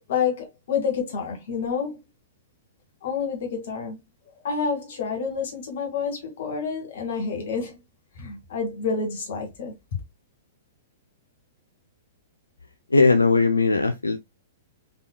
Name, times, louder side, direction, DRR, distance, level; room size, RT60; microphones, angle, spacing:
voice 1, 0.1-2.0 3.0-4.0 4.4-7.8 8.2-9.8, left 6 dB, 55° left, 2.3 m, -28 dB
voice 2, 12.9-14.2, left 3 dB, 80° left, 0.5 m, -19 dB
5.0 x 4.3 x 2.3 m
figure-of-eight pair, 105°, 0 cm